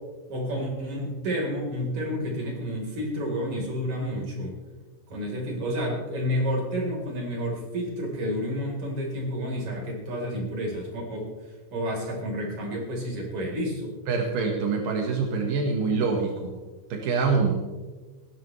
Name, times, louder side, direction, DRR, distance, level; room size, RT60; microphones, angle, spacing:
voice 1, 0.3-4.6 5.1-11.3 11.7-13.9, equal, 40° right, -1 dB, 4.7 m, -30 dB
voice 2, 14.1-16.5 16.9-17.6, right 4 dB, 65° right, 1 dB, 2.3 m, -25 dB
18.5 x 17.0 x 3.2 m, 1.3 s
omnidirectional pair, 5.8 m